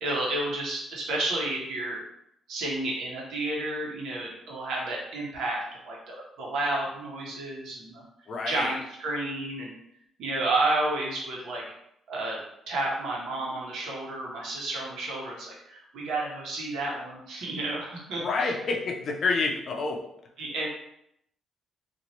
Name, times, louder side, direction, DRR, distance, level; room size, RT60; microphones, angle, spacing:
voice 1, 0.0-2.0 2.5-8.0 8.4-9.7 10.2-11.6 12.1-12.4 12.7-18.5 20.4-20.7, right 2 dB, 80° right, -3 dB, 1.0 m, -31 dB
voice 2, 8.3-8.8 18.2-20.0, left 3 dB, 55° left, 1 dB, 0.5 m, -28 dB
2.8 x 2.5 x 3.0 m, 0.78 s
cardioid pair, 90°, 0 cm